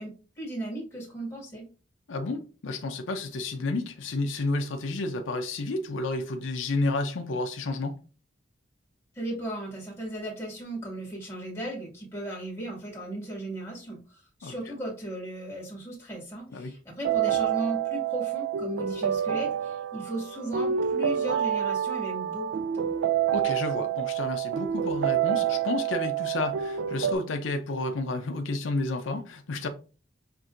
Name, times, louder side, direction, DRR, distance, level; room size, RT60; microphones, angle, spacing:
voice 1, 0.0-1.7 9.2-22.9, right 1 dB, 15° left, 1.7 m, -36 dB
voice 2, 2.1-7.9 14.4-14.7 16.5-16.7 23.3-29.7, left 2 dB, 90° left, 0.6 m, -31 dB
sound 1, 17.0-27.2, right 9 dB, 80° right, 0.3 m, -28 dB
5.8 x 2.6 x 2.5 m
head